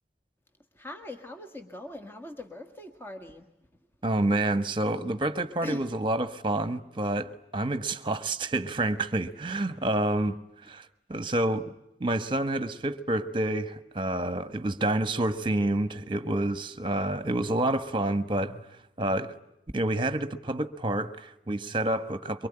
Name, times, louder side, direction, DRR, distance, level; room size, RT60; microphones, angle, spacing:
voice 1, 0.8-3.4 5.6-5.8, left 1 dB, 15° left, 1.8 m, -40 dB
voice 2, 4.0-10.4 10.7-11.7 12.0-18.6 19.0-19.3 19.7-22.5, right 1 dB, 30° right, 1.4 m, -28 dB
24.5 x 24.0 x 10.0 m
head